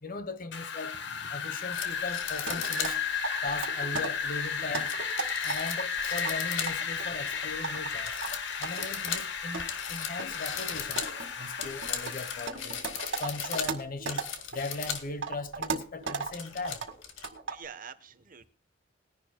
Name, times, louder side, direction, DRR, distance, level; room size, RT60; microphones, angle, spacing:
voice 1, 0.0-1.0 1.3-3.0 3.4-4.9 5.4-8.1 8.6-12.8 13.2-14.2 14.5-16.8, left 3 dB, 45° left, 1.1 m, -38 dB
Wind, 0.5-12.5, left 6 dB, 65° left, 1.4 m, -34 dB
sound 1, 1.7-3.0 3.5-3.6 4.7-7.0 7.3-7.8 8.0-15.1 15.5-15.6 16.0-17.3, left 8 dB, 85° left, 2.0 m, -37 dB
sound 2, 2.5-2.9 3.2-4.1 4.6-5.8 6.2-7.9 8.2-9.1 9.5-9.6 10.2-10.3 10.8-14.6 14.9-16.3 16.6-17.0 17.2-17.6, right 4 dB, 70° right, 2.0 m, -35 dB
voice 2, 17.5-18.5, right 6 dB, 45° right, 1.0 m, -47 dB
21.0 x 11.0 x 2.2 m
head